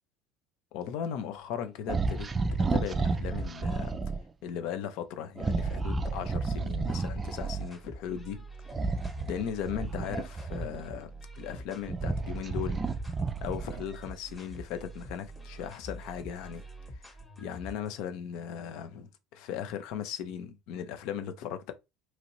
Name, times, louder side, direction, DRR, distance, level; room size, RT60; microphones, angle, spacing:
voice 1, 0.7-2.3 2.6-4.0 4.4-8.4 9.2-11.1 11.4-12.8 13.4-16.6 17.4-21.7, left 9 dB, 65° left, 0.5 m, -37 dB
sound 1, 1.9-4.2 5.4-7.7 8.7-11.0 11.6-13.9, right 3 dB, 25° right, 0.3 m, -31 dB
sound 2, 7.0-17.9, right 1 dB, 15° left, 1.0 m, -46 dB
2.9 x 2.5 x 2.9 m
hypercardioid pair, 70°, 0 cm